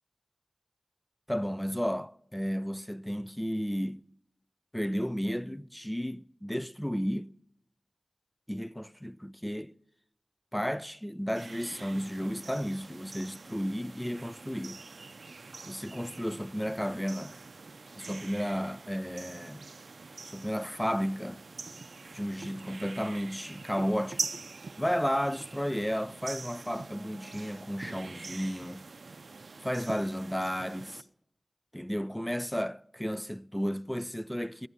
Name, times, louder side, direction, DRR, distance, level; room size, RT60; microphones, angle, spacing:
voice 1, 1.3-4.1 4.7-7.3 8.5-9.7 10.5-14.8 15.7-17.4 18.0-19.6 20.2-21.4 22.1-24.2 24.8-28.9 29.6-31.0 31.7-34.7, equal, 5° left, 0.5 m, -33 dB
sound 1, 11.3-31.0, right 3 dB, 85° right, 0.5 m, -44 dB
19.0 x 13.0 x 5.6 m
wide cardioid pair, 55°, 0 cm